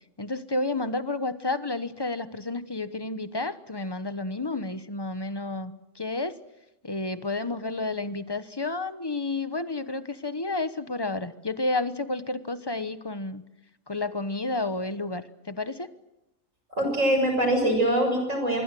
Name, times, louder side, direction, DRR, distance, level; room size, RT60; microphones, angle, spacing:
voice 1, 0.2-6.4 6.8-13.4 13.9-15.9, left 2 dB, 20° left, 12 dB, 1.0 m, -31 dB
voice 2, 16.7-18.6, right 1 dB, 65° right, 4 dB, 7.3 m, -23 dB
26.0 x 22.5 x 7.7 m, 0.92 s
omnidirectional pair, 1.4 m